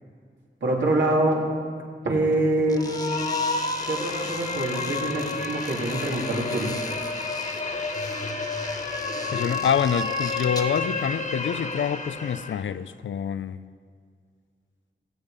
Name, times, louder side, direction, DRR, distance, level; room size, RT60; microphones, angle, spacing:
voice 1, 0.6-1.4 2.0-2.9 3.8-7.1, right 2 dB, 75° right, -3 dB, 3.4 m, -25 dB
sound 1, 2.6-10.9, left 2 dB, 20° left, 1.3 m, -39 dB
sound 2, 2.8-12.6, left 3 dB, 40° left, 1.6 m, -30 dB
voice 2, 9.3-13.7, left 8 dB, 90° left, 14 dB, 0.5 m, -26 dB
17.0 x 14.5 x 5.2 m, 2.1 s
wide cardioid pair, 85°, 19 cm